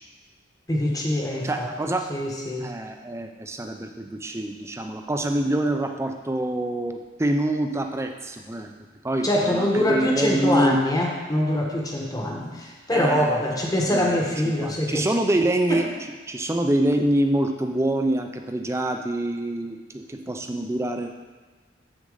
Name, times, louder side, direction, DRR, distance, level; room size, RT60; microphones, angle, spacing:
voice 1, 0.7-1.7 2.1-2.7 9.2-15.1 15.7-15.9, left 1 dB, 20° left, -1 dB, 1.1 m, -24 dB
voice 2, 1.4-2.1 2.6-8.7 9.0-10.8 12.9-13.6 13.9-15.9 16.3-21.2, right 1 dB, 15° right, 5 dB, 0.5 m, -26 dB
7.5 x 6.3 x 3.9 m, 1.3 s
head